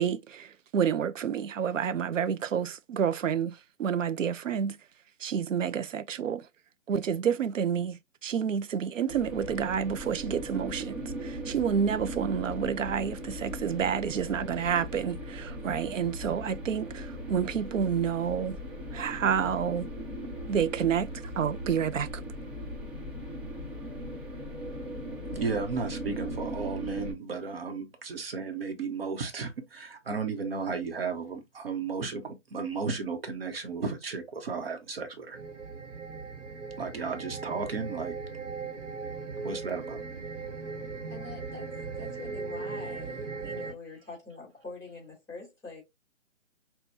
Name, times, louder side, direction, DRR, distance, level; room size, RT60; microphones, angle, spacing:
voice 1, 0.0-4.8 5.2-6.5 6.9-18.6 18.9-19.9 20.5-22.2, right 7 dB, 90° right, 0.5 m, -29 dB
sound 1, 9.1-27.1, equal, 20° right, 1.0 m, -38 dB
voice 2, 25.3-35.4 36.8-38.1 39.4-40.0, right 4 dB, 50° right, 0.9 m, -34 dB
sound 2, 35.3-43.7, right 4 dB, 70° right, 1.1 m, -38 dB
voice 3, 41.1-45.8, left 3 dB, 10° left, 2.1 m, -45 dB
5.9 x 2.2 x 2.6 m
hypercardioid pair, 150°, 37 cm